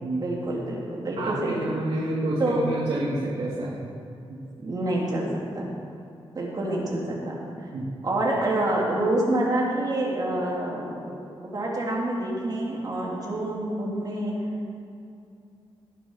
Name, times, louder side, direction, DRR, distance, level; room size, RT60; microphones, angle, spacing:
voice 1, 0.2-1.5 2.4-2.6 4.6-5.3 5.5-5.6 6.3-7.4 8.0-11.3 11.5-14.3, right 1 dB, 40° right, -4 dB, 2.6 m, -27 dB
voice 2, 1.2-3.8 4.3-4.4 7.7-7.9, right 2 dB, 80° right, -7 dB, 1.8 m, -29 dB
18.0 x 6.7 x 5.6 m, 2.6 s
wide cardioid pair, 175°, 10 cm